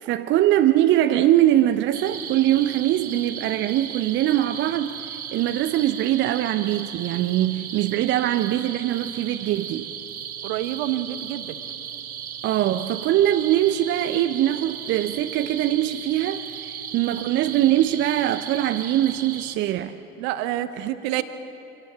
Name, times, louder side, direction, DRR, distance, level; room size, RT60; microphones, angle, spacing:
voice 1, 0.0-9.9 12.4-19.9 20.8-20.9, right 13 dB, 25° right, 9 dB, 0.6 m, -22 dB
sound 1, 1.9-19.6, right 8 dB, 75° right, 1.0 m, -36 dB
voice 2, 10.4-11.6 20.2-21.2, right 13 dB, 45° right, 11 dB, 1.3 m, -28 dB
25.5 x 17.5 x 7.2 m, 2.9 s
figure-of-eight pair, 80°, 43 cm